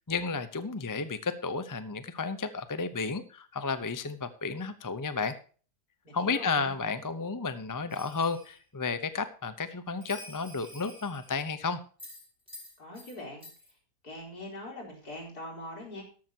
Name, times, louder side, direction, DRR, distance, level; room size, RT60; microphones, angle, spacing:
voice 1, 0.1-5.3 6.1-11.8, left 4 dB, 20° left, 11 dB, 0.6 m, -32 dB
voice 2, 6.0-6.7 12.8-13.5 14.0-16.0, left 1 dB, 70° left, -1 dB, 4.8 m, -42 dB
Bell, 7.9-8.6 10.0-11.5 12.0-13.2 13.4-13.7, left 1 dB, 5° right, 4.6 m, -49 dB
14.0 x 12.0 x 2.9 m, 0.40 s
omnidirectional pair, 1.7 m